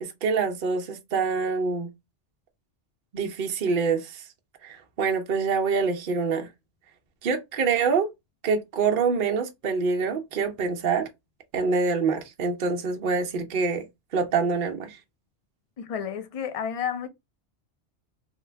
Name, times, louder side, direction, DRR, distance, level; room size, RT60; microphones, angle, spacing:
voice 1, 0.0-1.9 3.1-4.2 4.6-6.5 7.2-8.1 8.4-11.1 11.5-13.9 14.1-15.0, right 5 dB, 55° right, 0.7 m, -25 dB
voice 2, 15.8-17.1, left 8 dB, 45° left, 0.5 m, -31 dB
3.2 x 2.2 x 3.2 m
omnidirectional pair, 1.1 m